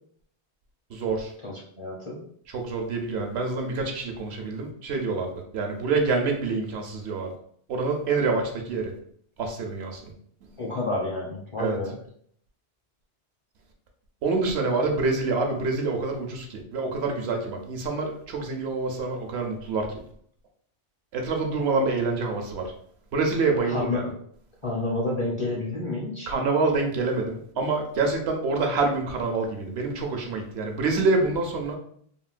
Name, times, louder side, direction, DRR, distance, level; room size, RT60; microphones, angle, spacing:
voice 1, 0.9-1.3 2.5-7.3 7.7-8.9 9.4-10.1 11.6-11.8 14.2-20.0 21.1-22.7 23.1-24.1 26.3-31.8, right 3 dB, 75° right, 3 dB, 0.9 m, -26 dB
voice 2, 1.4-2.2 10.6-12.0 23.6-24.1 24.6-26.3, left 2 dB, 35° left, -4 dB, 0.6 m, -29 dB
3.5 x 2.2 x 2.4 m, 0.63 s
omnidirectional pair, 1.1 m